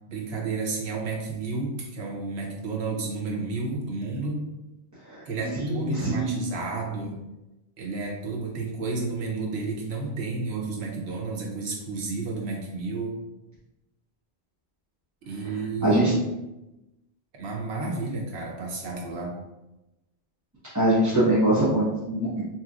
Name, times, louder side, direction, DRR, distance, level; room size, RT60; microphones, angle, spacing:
voice 1, 0.0-4.5 5.2-7.2 7.8-13.2 15.2-16.2 17.4-19.4, right 3 dB, 85° right, 0 dB, 1.0 m, -31 dB
voice 2, 5.5-6.4 15.8-16.1 20.7-22.4, right 1 dB, 20° right, -12 dB, 0.9 m, -23 dB
4.0 x 2.9 x 2.4 m, 0.97 s
omnidirectional pair, 1.1 m